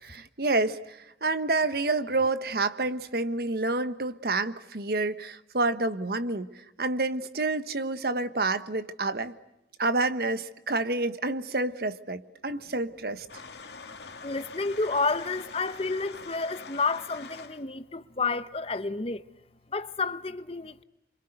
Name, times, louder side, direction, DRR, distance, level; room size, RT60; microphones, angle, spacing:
voice 1, 0.0-6.5 6.8-9.3 9.8-13.3, right 2 dB, 60° right, 1.3 m, -28 dB
sound 1, 13.3-17.6, left 4 dB, 70° left, 2.1 m, -44 dB
voice 2, 14.2-19.2 19.7-20.8, left 3 dB, 35° left, 0.9 m, -30 dB
28.0 x 25.5 x 8.0 m
head